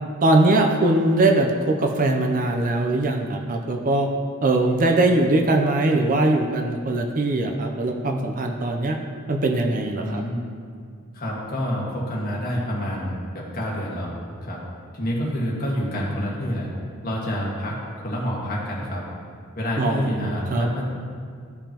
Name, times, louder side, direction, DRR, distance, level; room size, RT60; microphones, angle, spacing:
voice 1, 0.2-4.1 4.4-9.0 9.3-10.2 19.8-20.7, right 2 dB, 40° right, 3 dB, 0.5 m, -21 dB
voice 2, 10.0-10.4 11.1-14.1 14.4-14.6 14.9-16.7 17.0-19.0 19.5-20.8, equal, 45° left, -4 dB, 1.6 m, -28 dB
13.0 x 5.2 x 2.9 m, 2.2 s
head